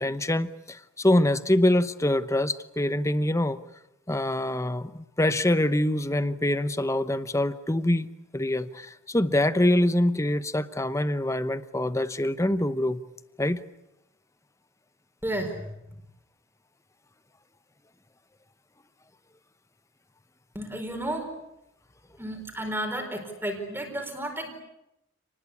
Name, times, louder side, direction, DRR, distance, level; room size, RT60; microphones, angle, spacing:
voice 1, 0.0-3.6 4.1-8.1 8.3-13.0 13.4-13.6, left 1 dB, 15° left, 13 dB, 0.9 m, -25 dB
voice 2, 15.2-16.0 20.5-21.4 22.2-24.5, right 1 dB, 10° right, 2 dB, 4.5 m, -32 dB
29.5 x 20.0 x 8.6 m, 0.88 s
head